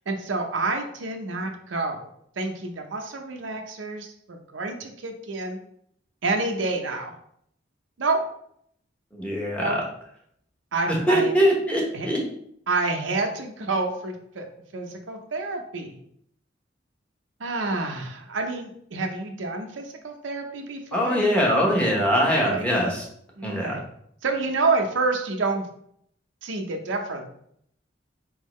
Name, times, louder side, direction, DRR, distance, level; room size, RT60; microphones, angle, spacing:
voice 1, 0.1-2.1 2.4-5.6 6.2-7.1 8.0-8.2 9.6-9.8 10.7-11.3 11.9-12.1 12.7-14.5 14.7-16.0 17.4-21.2 22.2-22.6 23.4-23.8 24.2-25.6 26.4-27.3, right 3 dB, 80° right, 4 dB, 0.7 m, -28 dB
voice 2, 9.1-9.8 10.9-12.2 20.9-23.0 23.4-23.8, equal, 5° left, -3 dB, 1.1 m, -22 dB
4.5 x 3.7 x 3.1 m, 0.69 s
head